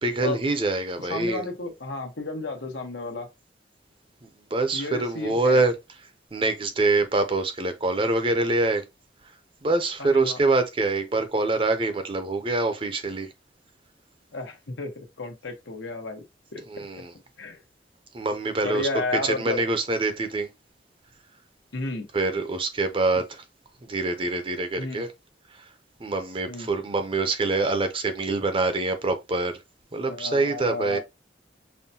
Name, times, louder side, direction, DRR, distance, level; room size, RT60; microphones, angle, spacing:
voice 1, 0.0-1.4 4.5-5.7 6.3-8.8 9.6-13.3 16.7-17.1 18.1-18.9 19.2-20.5 22.1-23.4 23.9-25.1 25.5-25.7 26.0-29.6 29.9-31.0, right 3 dB, 30° right, 0.6 m, -25 dB
voice 2, 1.1-3.3 4.7-5.6 10.0-10.4 14.3-16.2 16.5-16.8 17.4-17.6 18.6-19.6 21.7-22.1 24.8-25.0 26.5-26.7 30.1-31.0, left 3 dB, 90° left, 1.1 m, -32 dB
5.5 x 2.2 x 2.7 m
head